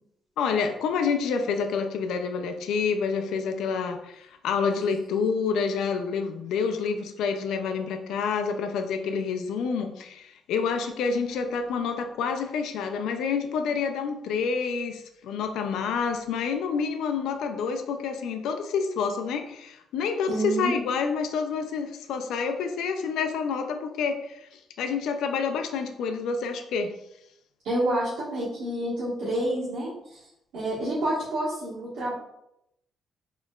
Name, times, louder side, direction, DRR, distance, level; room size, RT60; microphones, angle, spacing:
voice 1, 0.4-26.9, left 5 dB, 85° left, 6 dB, 0.4 m, -28 dB
voice 2, 20.3-20.7 27.6-30.2 30.5-32.1, right 1 dB, 80° right, -10 dB, 1.3 m, -28 dB
4.2 x 3.0 x 2.4 m, 0.82 s
cardioid pair, 90°, 0 cm